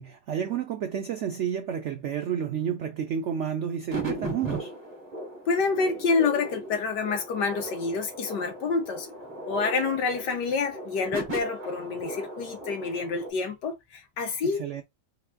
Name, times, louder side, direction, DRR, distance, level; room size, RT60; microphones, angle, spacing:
voice 1, 0.0-4.7 14.4-14.8, right 8 dB, 85° right, 0.6 m, -30 dB
sound 1, 3.9-13.3, right 1 dB, 25° right, 1.3 m, -37 dB
voice 2, 5.5-9.1 9.5-14.6, left 4 dB, 75° left, 1.7 m, -28 dB
4.1 x 3.5 x 2.2 m
omnidirectional pair, 1.9 m